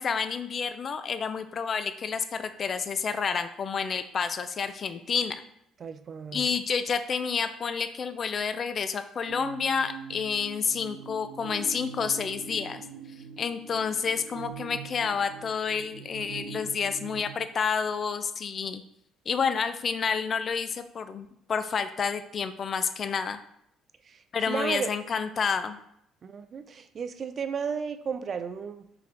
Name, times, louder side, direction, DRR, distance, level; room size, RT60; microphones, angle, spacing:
voice 1, 0.0-5.4 6.3-12.8 13.4-18.8 19.3-23.4 24.3-25.8, left 6 dB, 45° left, 11 dB, 0.3 m, -29 dB
voice 2, 5.8-6.5 24.1-24.9 26.2-28.9, right 6 dB, 45° right, 10 dB, 0.3 m, -34 dB
sound 1, 9.3-17.4, right 7 dB, 90° right, 0.7 m, -43 dB
4.5 x 2.5 x 3.4 m, 0.74 s
supercardioid pair, 80°, 0 cm